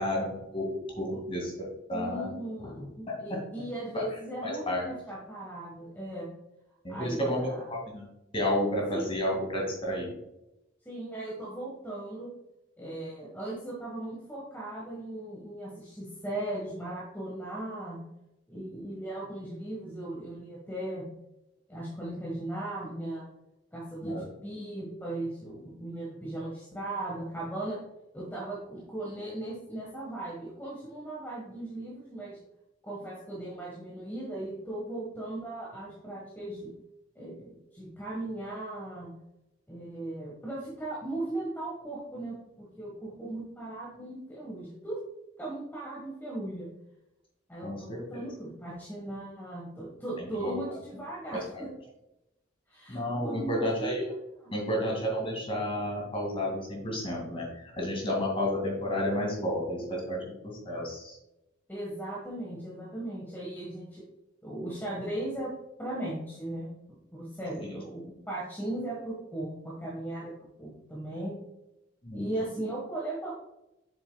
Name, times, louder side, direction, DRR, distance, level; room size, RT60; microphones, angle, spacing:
voice 1, 0.0-1.5 1.9-2.3 2.6-3.4 3.9-4.1 4.4-4.9 6.8-8.1 8.3-10.1 24.0-24.2 47.6-48.3 50.2-50.5 51.3-51.7 52.9-54.1 54.5-61.2 72.0-72.3, left 1 dB, 30° left, -1 dB, 2.2 m, -31 dB
voice 2, 1.9-6.3 6.9-7.7 8.9-9.1 10.8-12.3 12.8-18.0 18.5-21.0 21.7-23.3 23.7-27.8 28.1-32.4 32.8-36.7 37.1-39.1 39.7-45.0 45.4-46.7 47.5-51.7 52.7-53.9 54.4-54.7 61.7-64.0 64.4-70.3 70.6-71.4 72.1-73.3, right 1 dB, 10° left, -4 dB, 1.4 m, -37 dB
7.6 x 6.8 x 2.3 m, 0.90 s
head